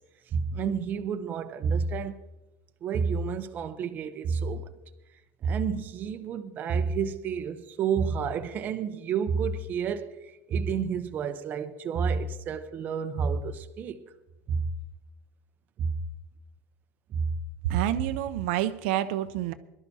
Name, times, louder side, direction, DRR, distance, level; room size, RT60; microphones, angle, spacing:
voice 1, 0.3-2.1 2.8-4.7 5.4-10.1 10.5-14.1 14.5-14.6 15.8-16.0 17.1-17.3, right 6 dB, 30° right, 0.7 m, -29 dB
voice 2, 17.7-19.5, right 12 dB, 70° right, 0.6 m, -28 dB
22.5 x 12.0 x 2.7 m
cardioid pair, 165°, 6 cm